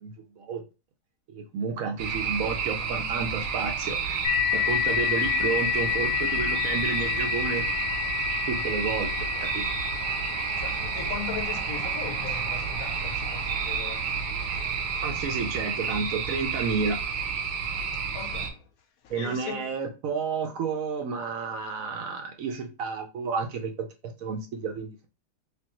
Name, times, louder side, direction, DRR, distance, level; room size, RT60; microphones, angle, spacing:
voice 1, 0.0-0.6 1.3-7.7 8.5-9.6 15.0-17.0 19.1-23.7 24.0-25.0, right 5 dB, 65° right, 0.9 m, -31 dB
sound 1, 2.0-18.5, right 6 dB, 85° right, 1.3 m, -30 dB
sound 2, 4.2-13.5, left 13 dB, 90° left, 1.2 m, -30 dB
voice 2, 10.6-14.1 18.1-18.7 19.0-19.7, left 9 dB, 70° left, 0.9 m, -39 dB
3.4 x 3.4 x 2.9 m
omnidirectional pair, 1.7 m